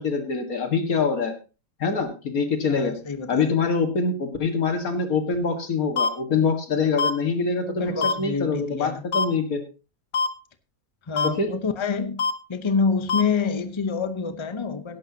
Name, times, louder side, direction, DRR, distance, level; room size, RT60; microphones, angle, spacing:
voice 1, 0.0-1.3 1.8-2.9 3.3-7.9 8.2-9.6 11.4-11.5, left 4 dB, 90° left, 2.2 m, -24 dB
voice 2, 2.7-3.5 7.7-9.0 11.1-12.2 12.5-15.0, left 5 dB, 25° left, 0.9 m, -27 dB
sound 1, 6.0-6.1 7.0-7.1 8.0-8.1 9.1-9.3 10.1-10.3 11.2-11.3 12.2-12.3 13.1-13.2, left 4 dB, 55° left, 1.2 m, -22 dB
16.5 x 11.0 x 2.9 m
omnidirectional pair, 1.5 m